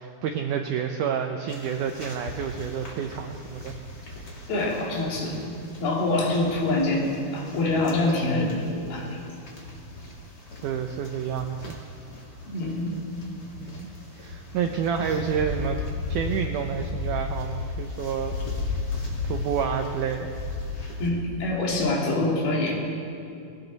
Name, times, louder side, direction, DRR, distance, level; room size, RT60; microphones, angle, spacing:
voice 1, 0.0-3.8 10.6-11.8 13.6-13.9 14.2-15.8 16.1-18.3 18.9-20.4, right 7 dB, 85° right, 5 dB, 1.8 m, -29 dB
sound 1, 1.5-21.1, left 1 dB, 30° left, 2.3 m, -41 dB
voice 2, 4.5-5.4 5.8-9.2 12.5-13.0 21.0-22.7, left 2 dB, 75° left, -2 dB, 4.3 m, -25 dB
sound 2, 15.3-21.3, left 4 dB, 90° left, 3.6 m, -32 dB
20.0 x 17.5 x 4.0 m, 2.6 s
omnidirectional pair, 4.5 m